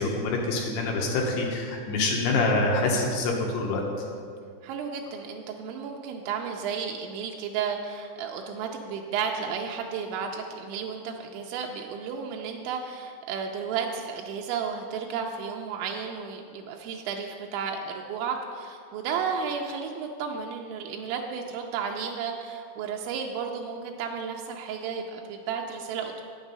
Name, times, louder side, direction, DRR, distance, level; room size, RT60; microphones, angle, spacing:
voice 1, 0.0-3.8, left 2 dB, 75° left, 0 dB, 2.8 m, -26 dB
voice 2, 4.6-26.2, right 6 dB, 90° right, 1 dB, 2.9 m, -33 dB
9.4 x 7.1 x 5.4 m, 2.2 s
omnidirectional pair, 5.2 m